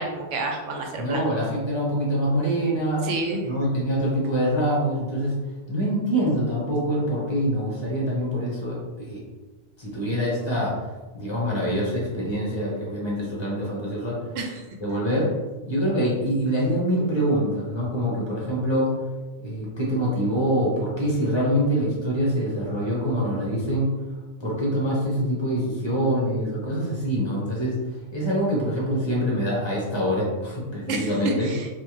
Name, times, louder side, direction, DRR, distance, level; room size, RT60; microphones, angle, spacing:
voice 1, 0.0-1.2 3.0-3.5 14.4-14.6 30.9-31.7, right 2 dB, 80° right, 2 dB, 1.0 m, -29 dB
voice 2, 1.0-3.1 3.4-5.3 5.7-9.2 9.8-10.7 11.1-14.2 14.8-15.3 15.7-18.9 19.4-23.9 24.4-27.8 28.1-31.5, equal, 25° left, -4 dB, 1.2 m, -25 dB
4.4 x 2.5 x 3.1 m, 1.2 s
omnidirectional pair, 1.3 m